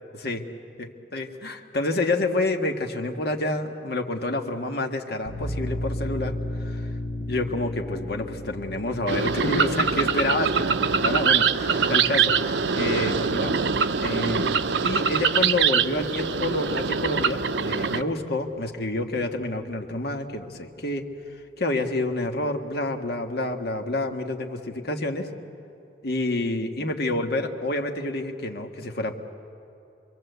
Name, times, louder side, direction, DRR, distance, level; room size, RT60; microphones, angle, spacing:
voice 1, 1.1-6.3 6.6-6.9 7.3-12.4 12.7-13.6 14.0-14.5 14.8-21.1 21.6-25.3 26.0-29.2, left 2 dB, 65° left, 4 dB, 1.8 m, -28 dB
sound 1, 5.3-16.6, left 1 dB, 25° left, 3.8 m, -36 dB
sound 2, 9.1-18.0, right 6 dB, 80° right, 0.7 m, -23 dB
27.0 x 22.5 x 8.2 m, 2.7 s
head